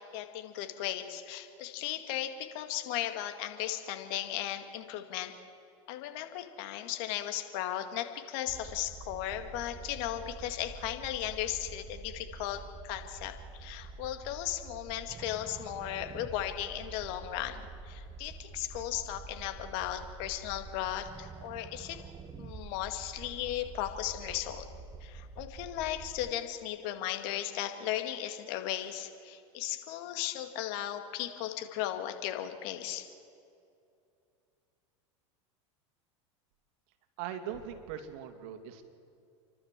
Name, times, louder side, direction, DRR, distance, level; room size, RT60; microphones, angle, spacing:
voice 1, 0.1-5.3 5.9-22.0 22.4-24.7 25.0-33.1, left 12 dB, 60° left, 7 dB, 2.1 m, -36 dB
sound 1, 8.5-26.3, right 4 dB, 20° right, 1.0 m, -47 dB
voice 2, 37.2-38.8, right 9 dB, 60° right, 7 dB, 2.3 m, -40 dB
29.5 x 12.0 x 7.6 m, 2.5 s
hypercardioid pair, 100°, 16 cm